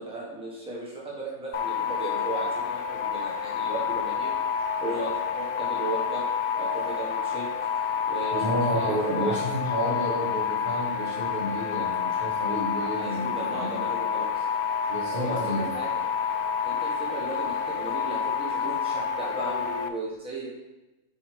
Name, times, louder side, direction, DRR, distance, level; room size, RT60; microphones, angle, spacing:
voice 1, 0.0-4.3 4.8-6.2 6.5-7.4 8.1-9.4 12.9-14.4 15.1-15.4 15.7-15.9 16.6-20.5, right 2 dB, 5° right, -5 dB, 1.5 m, -36 dB
sound 1, 1.5-19.9, left 7 dB, 85° left, 0.4 m, -29 dB
voice 2, 8.3-13.7 14.9-15.7, equal, 35° right, -7 dB, 1.6 m, -30 dB
6.1 x 5.6 x 3.7 m, 1.1 s
omnidirectional pair, 1.5 m